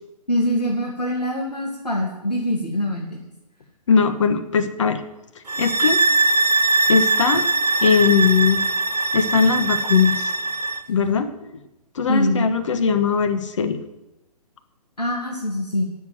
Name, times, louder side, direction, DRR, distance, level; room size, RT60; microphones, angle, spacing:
voice 1, 0.3-3.2 12.1-12.5 15.0-15.8, left 1 dB, 85° left, -2 dB, 2.3 m, -24 dB
voice 2, 3.9-5.0 5.6-6.0 6.9-7.5 7.8-8.6 9.1-10.3 10.9-11.6 11.9-13.8, left 6 dB, 50° left, 9 dB, 1.2 m, -20 dB
sound 1, 5.5-10.9, right 3 dB, 85° right, 0.6 m, -21 dB
9.4 x 7.0 x 9.1 m, 0.96 s
figure-of-eight pair, 130°, 20 cm